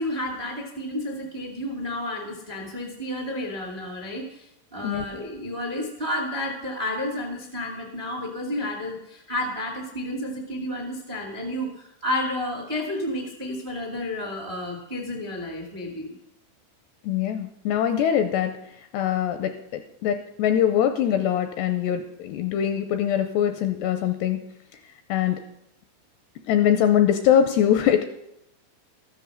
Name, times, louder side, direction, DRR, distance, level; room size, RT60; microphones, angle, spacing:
voice 1, 0.0-16.2, left 1 dB, 45° right, 1 dB, 0.6 m, -31 dB
voice 2, 17.0-18.5 18.9-24.4 25.1-25.4 26.5-28.0, left 9 dB, 85° left, 7 dB, 2.5 m, -22 dB
14.0 x 8.0 x 6.5 m, 0.82 s
omnidirectional pair, 5.4 m